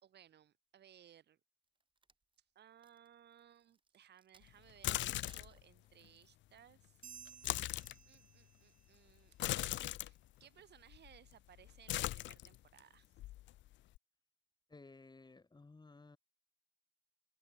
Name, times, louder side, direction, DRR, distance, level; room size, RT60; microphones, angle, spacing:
voice 1, 0.0-1.4 2.5-7.0 8.1-9.7 10.0-13.1, right 10 dB, 60° right, 1.4 m, -62 dB
Crack, 1.6-4.7 5.1-6.3 6.9-7.1, right 4 dB, 25° right, 2.3 m, -70 dB
sound 1, 4.7-5.6 7.3-8.0 9.4-10.1 10.9-11.3 11.6-12.8 13.2-14.0, left 15 dB, 70° left, 0.4 m, -39 dB
sound 2, 7.0-8.9, right 8 dB, 40° right, 0.6 m, -56 dB
voice 2, 14.7-16.2, left 3 dB, 20° left, 3.4 m, -57 dB
cardioid pair, 90°, 20 cm